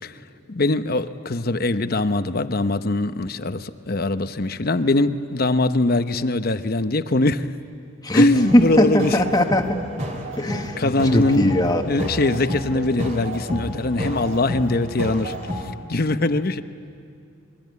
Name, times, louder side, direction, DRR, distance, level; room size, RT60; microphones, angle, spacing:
voice 1, 0.5-7.4 8.1-9.2 10.8-11.5 11.9-15.3 15.9-16.6, left 2 dB, 45° left, 10 dB, 0.8 m, -22 dB
voice 2, 8.0-9.8 10.4-11.8, left 1 dB, 20° left, 5 dB, 1.4 m, -20 dB
sound 1, 8.3-15.7, equal, 35° right, 2.8 m, -30 dB
27.5 x 22.5 x 9.4 m, 2.4 s
head